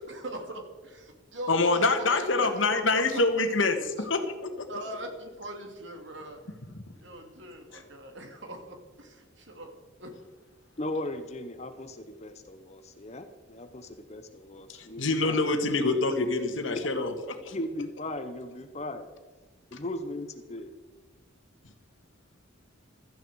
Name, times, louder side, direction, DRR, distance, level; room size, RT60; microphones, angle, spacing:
voice 1, 0.0-3.2 4.0-4.1 4.7-6.4 7.0-9.7 10.0-10.1, right 1 dB, 65° right, 4 dB, 2.4 m, -40 dB
voice 2, 1.5-3.8 4.1-4.7 7.7-7.8 14.8-17.1 17.4-17.5, left 3 dB, 75° left, 6 dB, 1.7 m, -26 dB
voice 3, 10.8-15.4 17.5-19.1 19.7-20.7, left 1 dB, 35° left, 9 dB, 0.8 m, -37 dB
16.5 x 13.5 x 4.8 m, 1.3 s
head